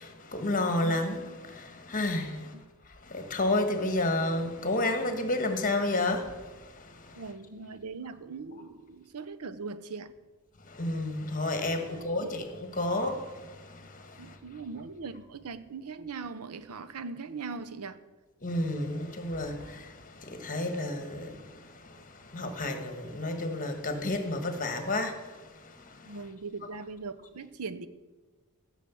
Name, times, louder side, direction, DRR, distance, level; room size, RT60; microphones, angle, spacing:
voice 1, 0.0-2.5 3.1-7.2 10.7-14.4 18.4-25.4 25.8-26.1, left 2 dB, 40° left, 1.4 m, -31 dB
voice 2, 7.2-10.1 11.8-12.4 14.2-18.0 26.0-27.9, right 4 dB, 85° right, 0.7 m, -40 dB
14.5 x 6.5 x 7.1 m
head